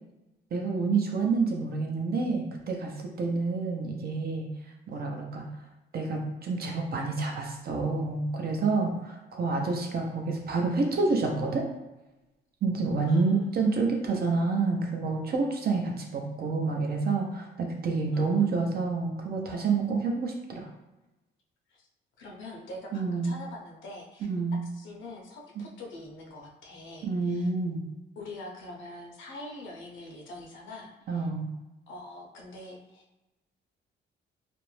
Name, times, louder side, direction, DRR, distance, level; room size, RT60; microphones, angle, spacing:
voice 1, 0.5-4.5 4.9-5.5 5.9-11.6 12.6-20.7 22.9-23.3 24.2-24.6 27.0-27.8 31.1-31.5, right 4 dB, 50° right, 1 dB, 0.6 m, -28 dB
voice 2, 13.1-13.4 18.1-18.6 21.7-21.9 22.2-24.3 24.6-27.5 28.2-31.3 31.9-33.0, left 2 dB, 75° left, -1 dB, 0.7 m, -44 dB
2.5 x 2.1 x 3.1 m, 1.0 s
cardioid pair, 90°, 20 cm